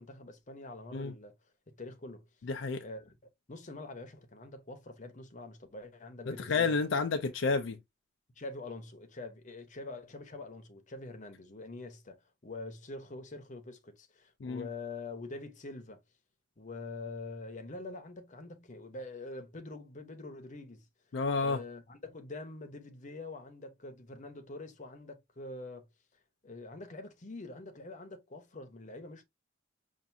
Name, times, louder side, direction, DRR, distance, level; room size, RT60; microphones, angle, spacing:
voice 1, 0.0-1.3 1.7-2.3 2.8-3.2 3.5-6.8 8.4-16.0 16.6-20.9 21.4-25.9 26.4-29.2, left 2 dB, 40° left, 0.9 m, -45 dB
voice 2, 2.4-2.8 6.3-7.8 14.4-14.7 21.1-21.6, left 4 dB, 70° left, 0.5 m, -30 dB
5.7 x 2.6 x 2.6 m
head